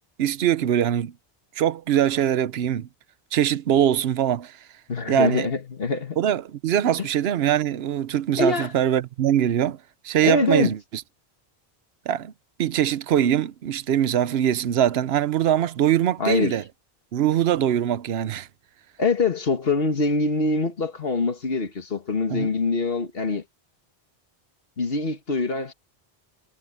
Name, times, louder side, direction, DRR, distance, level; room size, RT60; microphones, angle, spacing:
voice 1, 0.2-1.1 1.6-2.9 3.3-4.5 5.1-5.5 6.2-9.8 10.0-10.8 12.1-12.3 12.6-16.6 17.1-18.5 22.3-22.5, right 10 dB, 80° right, 0.9 m, -22 dB
voice 2, 4.9-6.2 7.0-7.1 8.4-8.7 10.2-10.7 16.2-16.6 19.0-23.4 24.8-25.7, left 3 dB, 65° left, 1.9 m, -24 dB
omnidirectional pair, 1.0 m